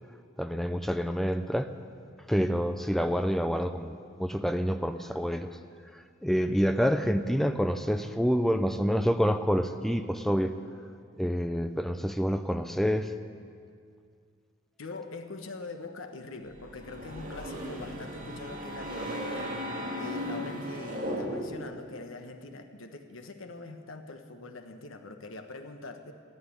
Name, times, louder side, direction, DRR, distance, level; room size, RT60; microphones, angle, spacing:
voice 1, 0.4-1.7 2.3-5.5 5.9-10.5 11.2-13.1, equal, ahead, 8 dB, 0.5 m, -27 dB
voice 2, 14.8-26.1, left 3 dB, 75° left, 6 dB, 1.3 m, -43 dB
sound 1, 16.5-21.8, equal, 40° right, 2.0 m, -36 dB
15.0 x 8.5 x 9.7 m, 2.2 s
head